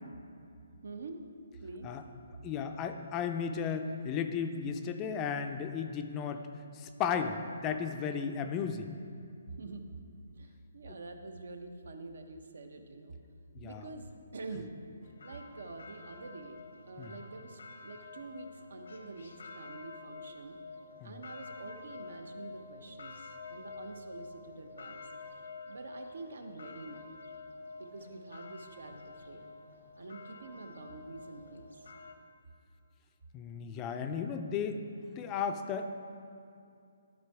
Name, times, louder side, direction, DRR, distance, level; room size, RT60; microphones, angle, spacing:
voice 1, 0.8-1.2 1.6-2.0 9.6-9.8 10.3-13.2 13.6-14.7 15.2-20.6 21.0-25.0 25.7-27.1 27.7-29.5 29.9-31.9, right 3 dB, 75° right, 6 dB, 0.8 m, -46 dB
voice 2, 2.4-6.4 6.7-8.9 10.9-11.0 13.6-13.9 17.0-17.1 21.0-21.1 33.3-35.9, left 6 dB, 20° left, 7 dB, 0.4 m, -35 dB
sound 1, 15.0-32.1, left 3 dB, 80° left, 0.8 m, -49 dB
12.0 x 4.4 x 4.7 m, 2.5 s
hypercardioid pair, 160°, 0 cm